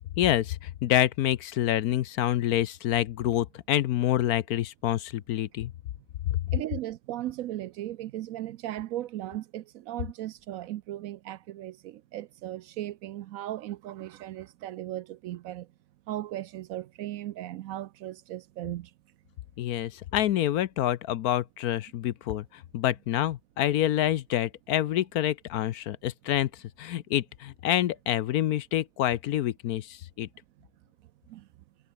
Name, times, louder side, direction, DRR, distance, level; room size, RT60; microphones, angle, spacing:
voice 1, 0.2-5.7 6.3-6.4 19.6-26.5 26.8-30.3, left 12 dB, 65° left, 1.0 m, -27 dB
voice 2, 6.5-15.7 16.1-18.9 30.6-30.7 31.3-31.5, right 13 dB, 75° right, 0.8 m, -37 dB
omnidirectional pair, 1.9 m